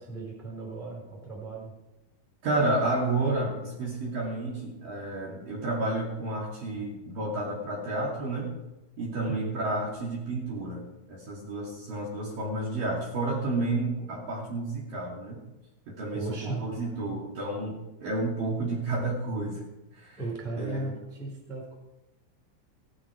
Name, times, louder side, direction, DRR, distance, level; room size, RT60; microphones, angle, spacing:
voice 1, 0.0-1.7 9.3-9.6 16.1-16.6 20.2-21.8, right 3 dB, 5° left, -2 dB, 3.2 m, -36 dB
voice 2, 2.4-8.5 9.0-15.4 15.9-19.6 19.9-20.2 20.6-20.9, right 2 dB, 50° right, -4 dB, 3.7 m, -31 dB
17.5 x 11.5 x 4.7 m, 0.97 s
omnidirectional pair, 5.9 m